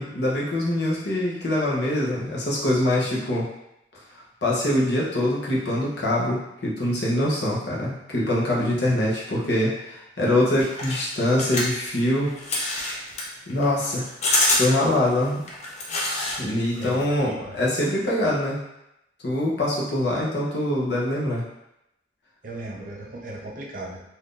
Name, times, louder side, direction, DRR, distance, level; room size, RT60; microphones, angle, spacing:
voice 1, 0.0-3.5 4.4-12.3 13.5-14.0 14.5-15.4 16.4-18.6 19.2-21.4, left 1 dB, 65° left, -5 dB, 0.9 m, -24 dB
sound 1, 10.6-16.4 16.7-17.2, left 1 dB, 35° left, 0.6 m, -26 dB
voice 2, 16.8-17.6 22.4-24.0, right 1 dB, 50° right, -1 dB, 0.5 m, -36 dB
2.7 x 2.6 x 3.6 m, 0.85 s
head